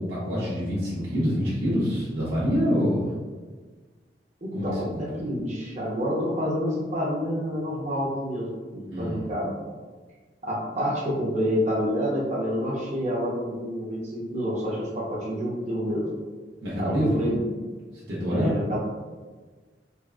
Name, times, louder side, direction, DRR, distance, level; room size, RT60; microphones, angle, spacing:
voice 1, 0.0-3.1 4.5-5.0 8.9-9.2 16.6-17.2 17.9-18.5, equal, 80° right, -9 dB, 0.8 m, -26 dB
voice 2, 4.4-9.5 10.4-16.1 16.8-17.4 18.3-18.8, equal, 40° right, -4 dB, 0.7 m, -28 dB
3.5 x 2.3 x 2.4 m, 1.4 s
head